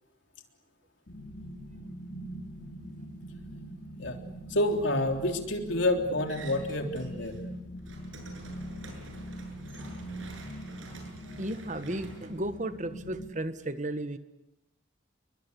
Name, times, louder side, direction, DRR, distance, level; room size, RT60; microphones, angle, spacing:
sound 1, 1.1-13.3, equal, 55° left, 5.8 m, -43 dB
voice 1, 4.5-7.3, left 1 dB, 70° left, 4 dB, 3.6 m, -28 dB
sound 2, 6.3-7.4 7.7-13.1, right 2 dB, 80° right, 7.6 m, -48 dB
voice 2, 11.3-14.2, right 1 dB, 35° right, 10 dB, 1.5 m, -34 dB
29.5 x 23.0 x 8.3 m, 0.87 s
head